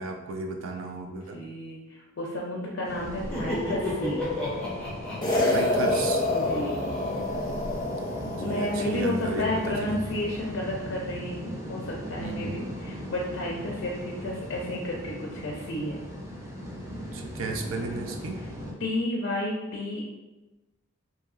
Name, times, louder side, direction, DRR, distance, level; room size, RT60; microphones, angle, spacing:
voice 1, 0.0-1.4 5.5-6.2 8.2-10.0 12.1-12.6 17.1-18.4, right 2 dB, 80° right, 4 dB, 0.4 m, -34 dB
voice 2, 1.3-4.2 6.3-6.8 8.4-16.0 18.8-20.0, left 1 dB, 65° left, -3 dB, 0.5 m, -31 dB
sound 1, 2.8-18.7, equal, 15° right, 0.6 m, -38 dB
Laughter, 3.0-7.7, left 2 dB, 5° left, 1.0 m, -34 dB
sound 2, 5.2-9.7, left 1 dB, 20° left, 0.7 m, -28 dB
2.8 x 2.7 x 2.4 m, 1.1 s
head